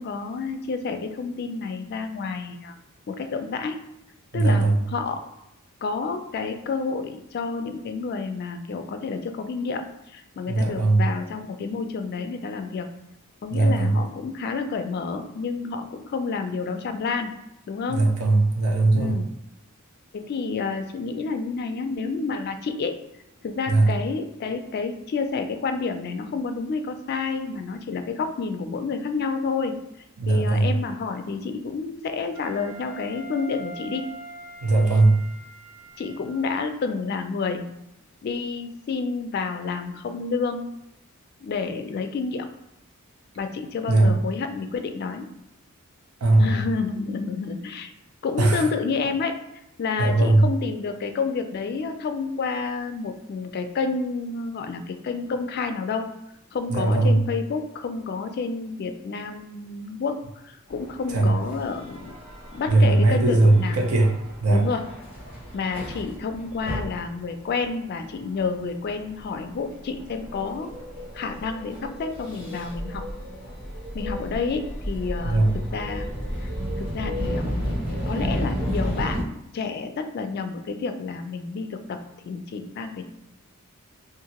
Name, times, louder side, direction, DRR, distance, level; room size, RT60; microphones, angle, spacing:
voice 1, 0.0-2.8 3.1-3.8 4.3-5.2 5.8-12.9 13.4-17.3 17.7-18.0 18.9-19.3 20.1-22.9 23.4-29.7 30.3-34.0 36.0-37.6 38.2-40.7 41.4-42.5 43.4-45.3 46.4-47.9 48.2-49.3 49.8-56.1 56.5-60.2 60.4-62.1 62.5-63.8 64.5-64.8 65.5-70.7 71.1-73.1 73.9-75.5 75.7-76.1 76.4-76.5 76.8-77.6 78.0-79.2 79.5-83.1, left 4 dB, 45° left, 7 dB, 0.3 m, -29 dB
voice 2, 4.3-4.8 10.5-11.0 13.5-14.0 17.9-19.2 23.7-23.9 30.2-30.7 34.6-35.2 43.9-44.1 46.2-46.7 48.4-48.6 50.0-50.5 56.7-57.2 61.1-61.3 62.7-64.1 64.4-64.6 75.2-75.5, right 2 dB, 85° right, 0 dB, 0.7 m, -19 dB
Wind instrument woodwind instrument, 32.3-36.6, right 1 dB, 5° right, 0.6 m, -43 dB
sound 1, 60.7-79.2, equal, 40° right, 1.2 m, -33 dB
2.7 x 2.5 x 2.9 m, 0.83 s
head